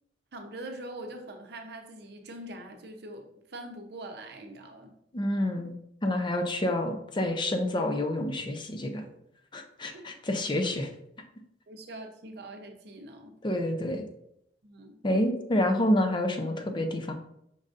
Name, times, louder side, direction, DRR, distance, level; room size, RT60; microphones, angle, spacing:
voice 1, 0.3-4.9 9.9-10.1 11.7-13.4 14.6-15.0, right 1 dB, 65° right, 4 dB, 0.7 m, -43 dB
voice 2, 5.1-5.7 6.0-9.0 9.5-10.9 13.4-14.0 15.0-17.1, left 1 dB, 25° left, 5 dB, 0.5 m, -28 dB
5.4 x 3.8 x 2.5 m, 0.76 s
head